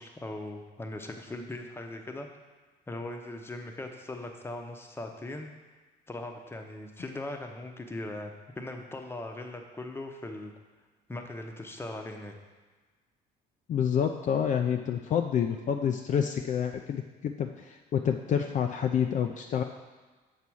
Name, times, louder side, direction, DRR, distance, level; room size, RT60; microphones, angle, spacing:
voice 1, 0.0-2.3 2.9-5.5 6.1-10.5 11.1-12.3, left 2 dB, 15° left, 3 dB, 0.8 m, -39 dB
voice 2, 13.7-19.6, left 8 dB, 50° left, 4 dB, 0.5 m, -28 dB
7.1 x 4.1 x 6.2 m, 1.3 s
cardioid pair, 110°, 17 cm